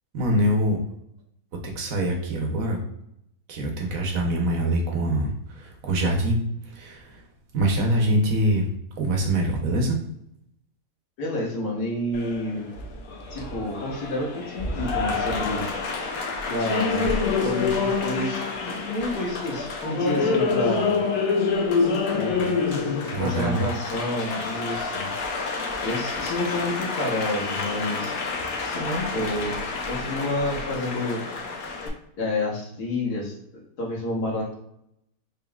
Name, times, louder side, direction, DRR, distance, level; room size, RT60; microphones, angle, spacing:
voice 1, 0.1-0.8 1.7-2.8 3.5-7.3 7.5-8.7 9.0-10.0 23.1-23.7, right 1 dB, 65° right, 1 dB, 1.1 m, -24 dB
voice 2, 11.2-12.6 13.3-15.7 16.5-21.0 22.1-22.6 23.2-25.1 25.8-29.5 29.9-31.2 32.2-34.5, left 1 dB, 85° left, -3 dB, 1.6 m, -29 dB
Applause, 12.1-31.9, left 4 dB, 70° left, 1.1 m, -27 dB
3.7 x 3.6 x 2.3 m, 0.76 s
omnidirectional pair, 1.6 m